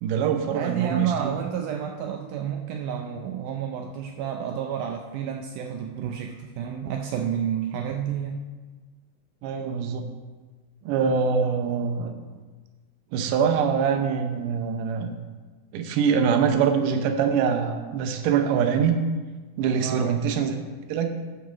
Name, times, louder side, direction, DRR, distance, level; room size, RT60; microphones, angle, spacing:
voice 1, 0.0-1.1 9.4-10.1 10.8-12.1 13.1-15.1 15.7-19.0 19.6-20.5 20.9-21.1, right 6 dB, 75° right, 6 dB, 2.2 m, -24 dB
voice 2, 0.5-8.5 19.8-20.1, right 8 dB, 90° right, 3 dB, 1.8 m, -30 dB
11.5 x 4.8 x 6.3 m, 1.4 s
omnidirectional pair, 4.3 m